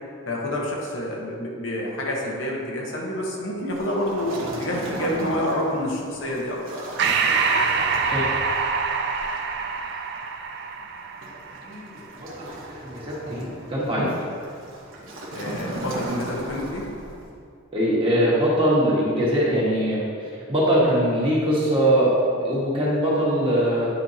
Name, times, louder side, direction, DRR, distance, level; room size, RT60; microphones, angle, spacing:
voice 1, 0.3-7.1 15.3-16.8, left 1 dB, 65° left, -2 dB, 1.0 m, -28 dB
Waves surf, 3.7-17.4, right 1 dB, 75° right, 1.0 m, -37 dB
Breathing, 7.0-11.9, right 5 dB, 55° right, 0.4 m, -25 dB
voice 2, 11.6-14.1 17.7-22.1 22.4-23.9, equal, 25° right, -7 dB, 1.6 m, -22 dB
9.5 x 4.5 x 2.8 m, 2.3 s
head